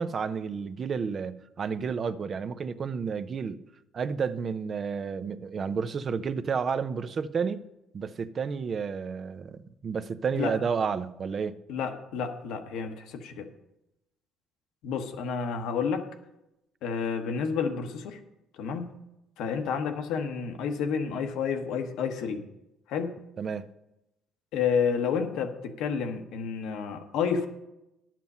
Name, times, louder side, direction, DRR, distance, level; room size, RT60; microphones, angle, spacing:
voice 1, 0.0-3.6 3.9-7.6 7.9-11.6 23.4-23.7, right 6 dB, 40° right, 0.5 m, -31 dB
voice 2, 11.7-13.5 14.8-16.1 16.8-18.2 18.6-19.0 19.4-22.5 22.9-23.2 24.5-27.5, left 6 dB, 80° left, 1.1 m, -30 dB
10.5 x 7.5 x 5.5 m
cardioid pair, 100°, 0 cm